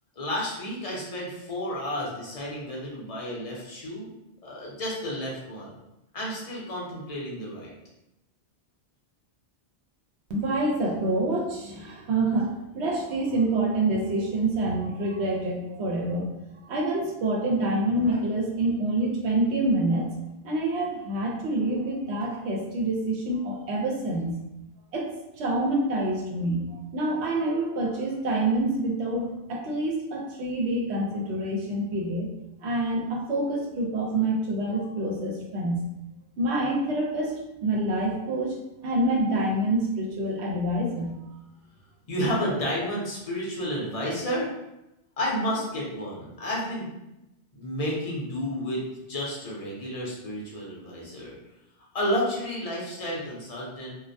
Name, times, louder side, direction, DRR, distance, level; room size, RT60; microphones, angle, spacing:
voice 1, 0.2-4.1 4.4-5.7 6.1-7.7 42.1-44.5 45.2-46.9 47.5-48.8 49.1-51.3 51.9-53.9, equal, 40° left, -4 dB, 0.6 m, -31 dB
voice 2, 10.3-16.3 16.7-20.1 20.4-24.4 24.9-32.3 32.6-35.8 36.4-38.5 38.8-41.2, right 1 dB, 75° right, -1 dB, 0.8 m, -27 dB
2.3 x 2.1 x 2.6 m, 0.92 s
omnidirectional pair, 1.2 m